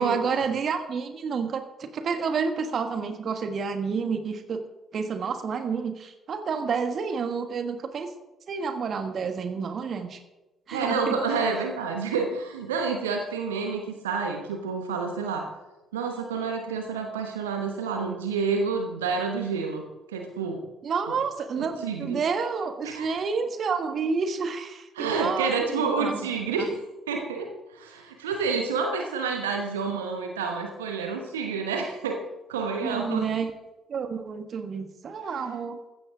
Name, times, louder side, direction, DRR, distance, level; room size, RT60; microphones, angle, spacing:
voice 1, 0.0-4.6 4.9-8.1 8.5-10.2 10.7-11.2 20.8-26.3 32.8-33.5 33.9-35.8, right 5 dB, 50° right, 7 dB, 1.6 m, -29 dB
voice 2, 10.7-15.5 15.9-20.6 21.1-21.2 21.6-22.2 22.8-23.2 24.9-26.8 27.1-32.2 32.5-33.3, right 4 dB, 80° right, 4 dB, 1.1 m, -29 dB
15.0 x 14.0 x 3.7 m, 1.0 s
figure-of-eight pair, 45°, 0 cm